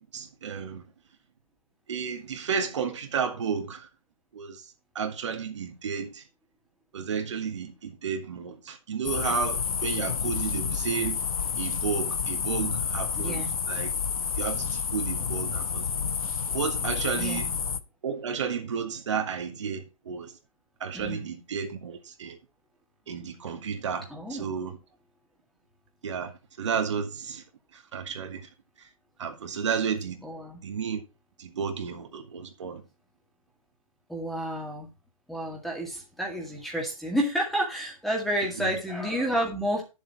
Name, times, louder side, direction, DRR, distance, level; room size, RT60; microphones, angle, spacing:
voice 1, 0.1-0.8 1.9-3.9 4.3-4.7 4.9-6.2 6.9-11.2 11.6-13.9 14.4-15.9 16.5-17.5 18.0-20.3 20.8-22.4 23.1-24.8 26.0-26.3 26.6-27.4 27.7-28.5 29.2-30.2 30.6-31.0 31.4-32.8 38.6-38.7, right 6 dB, 55° right, 2.1 m, -32 dB
sound 1, 9.0-17.8, left 6 dB, 80° left, 1.0 m, -29 dB
voice 2, 13.1-13.5 17.1-17.5 20.9-21.3 24.1-24.5 30.2-30.6 34.1-34.9 35.3-39.8, equal, ahead, 2.0 m, -30 dB
10.5 x 7.2 x 4.2 m
hypercardioid pair, 155°, 18 cm